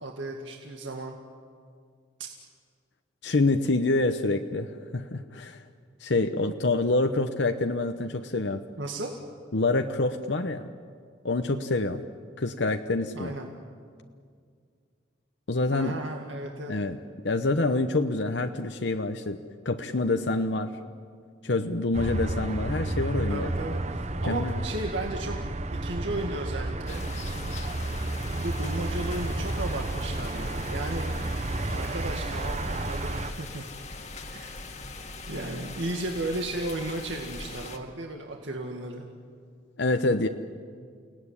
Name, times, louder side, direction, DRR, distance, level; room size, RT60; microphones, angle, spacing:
voice 1, 0.0-1.2 8.8-9.1 13.1-13.5 15.7-16.7 23.3-25.4 25.8-27.4 28.3-31.1 31.7-33.7 34.3-34.7 35.3-39.1, right 2 dB, 85° right, 2 dB, 2.1 m, -35 dB
voice 2, 3.2-5.6 6.0-8.6 9.5-10.7 11.2-12.0 12.4-13.3 15.5-16.0 16.7-17.0 17.2-19.4 19.6-20.7 21.4-23.5 24.3-24.6 39.8-40.3, left 2 dB, 70° left, 6 dB, 1.0 m, -26 dB
sound 1, 21.9-33.3, right 2 dB, 35° right, 0.9 m, -31 dB
sound 2, 26.9-37.8, left 3 dB, 40° left, 1.9 m, -41 dB
29.5 x 18.5 x 10.0 m, 2.1 s
head